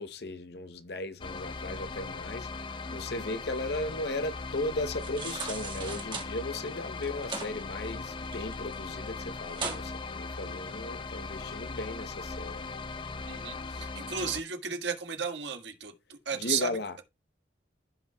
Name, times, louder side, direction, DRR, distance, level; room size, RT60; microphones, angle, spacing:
voice 1, 0.0-2.5 2.9-12.7 16.3-17.0, left 2 dB, 60° left, 0.7 m, -36 dB
sound 1, 1.2-14.4, left 4 dB, 25° left, 0.5 m, -39 dB
sound 2, 4.9-6.3 7.0-7.5 7.9-8.7 9.1-9.2 9.5-9.8 10.3-10.4, right 4 dB, 25° right, 1.6 m, -37 dB
voice 2, 13.3-16.7, right 6 dB, 80° right, 1.6 m, -34 dB
15.0 x 5.5 x 2.2 m
head